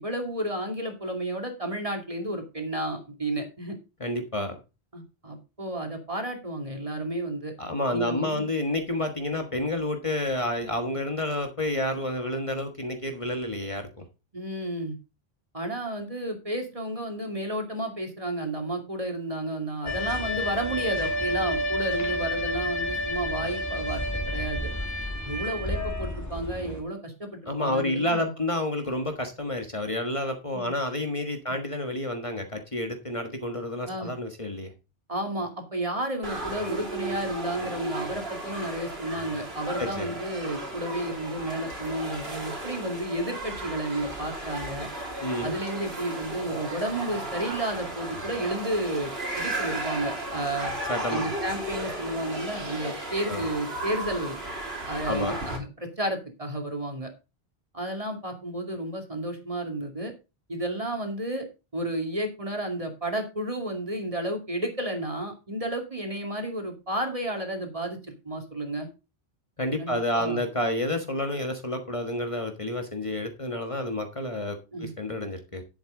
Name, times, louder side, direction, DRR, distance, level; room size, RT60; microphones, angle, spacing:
voice 1, 0.0-3.8 4.9-7.5 7.9-8.4 14.3-15.0 15.5-24.7 25.2-28.3 30.5-30.7 33.9-34.1 35.1-44.9 45.4-49.1 49.4-50.7 51.1-54.4 54.9-57.1 57.7-60.1 60.5-61.5 61.7-68.9 69.8-70.4 74.7-74.9, right 1 dB, 35° right, 3 dB, 2.4 m, -32 dB
voice 2, 4.0-4.6 7.6-14.0 27.5-34.7 39.8-40.2 45.2-45.6 50.9-51.2 53.3-53.5 55.1-55.4 69.6-75.6, left 1 dB, 30° left, 5 dB, 1.5 m, -29 dB
sound 1, 19.9-26.8, left 1 dB, 15° left, 2.2 m, -30 dB
sound 2, 36.2-55.6, right 2 dB, 75° right, 3.1 m, -35 dB
10.5 x 8.1 x 3.8 m, 0.28 s
omnidirectional pair, 1.1 m